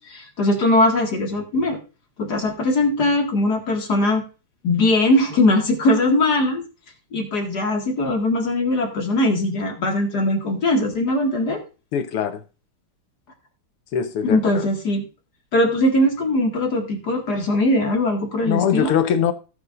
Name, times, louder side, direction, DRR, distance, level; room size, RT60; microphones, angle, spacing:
voice 1, 0.1-1.8 2.2-4.2 4.6-6.6 7.1-11.6 14.2-15.1 15.5-18.9, left 1 dB, 50° left, 2.3 m, -20 dB
voice 2, 11.9-12.4 13.9-14.7 18.5-19.3, left 8 dB, 90° left, 1.9 m, -22 dB
18.0 x 6.3 x 2.5 m
omnidirectional pair, 2.4 m